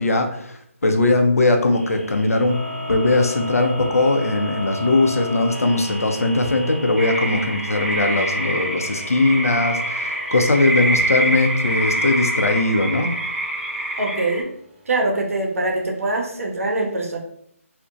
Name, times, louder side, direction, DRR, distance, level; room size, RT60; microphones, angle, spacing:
voice 1, 0.0-13.2, left 2 dB, 85° left, 4 dB, 0.5 m, -20 dB
sound 1, 1.7-16.0, left 1 dB, 45° right, 1.0 m, -36 dB
sound 2, 7.0-14.4, right 1 dB, 15° right, 0.5 m, -25 dB
voice 2, 14.0-14.5 14.9-17.2, right 2 dB, 70° right, 1 dB, 0.6 m, -23 dB
2.6 x 2.1 x 2.4 m, 0.70 s
figure-of-eight pair, 150°, 8 cm